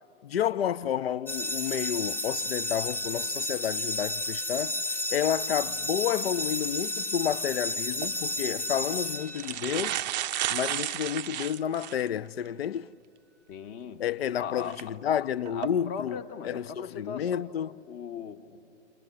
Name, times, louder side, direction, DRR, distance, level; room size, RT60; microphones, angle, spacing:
voice 1, 0.2-4.8 5.1-10.0 10.5-12.9 14.0-16.2 16.4-17.8, left 9 dB, 60° left, 0.6 m, -30 dB
sound 1, 1.3-9.9, left 1 dB, 5° left, 0.7 m, -32 dB
sound 2, 7.9-8.1 8.9-9.0 9.3-12.1 12.6-12.7 14.6-14.8 15.4-15.7, right 13 dB, 40° right, 0.5 m, -32 dB
voice 2, 13.5-14.1 14.4-15.0 15.5-18.7, left 7 dB, 30° left, 1.2 m, -39 dB
29.5 x 25.5 x 7.4 m
figure-of-eight pair, 105°, 35 cm